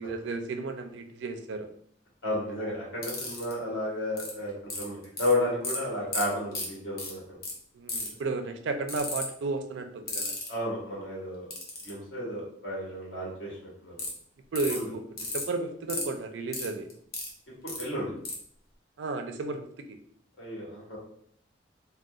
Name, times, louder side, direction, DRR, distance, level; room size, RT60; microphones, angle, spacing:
voice 1, 0.0-1.7 7.7-10.4 14.5-15.0 15.3-16.9 19.0-20.0, right 3 dB, 75° right, 7 dB, 0.4 m, -33 dB
voice 2, 2.2-7.4 10.5-11.4 11.8-13.9 14.7-14.9 17.6-18.1 20.4-21.0, left 1 dB, 80° left, -6 dB, 1.4 m, -32 dB
sound 1, 3.0-3.5 4.2-4.3 4.7-5.3 5.6-5.8 6.1-6.2 6.5-6.7 7.0-7.1 7.4-7.5 7.9-8.2 8.9-9.2 10.1-10.5 11.5-11.9 14.0-14.1 14.5-14.8 15.2-15.4 15.9-16.0 16.5-17.3 17.7-17.8 18.2-18.3, left 3 dB, 55° left, 0.7 m, -33 dB
3.7 x 2.2 x 2.3 m, 0.64 s
head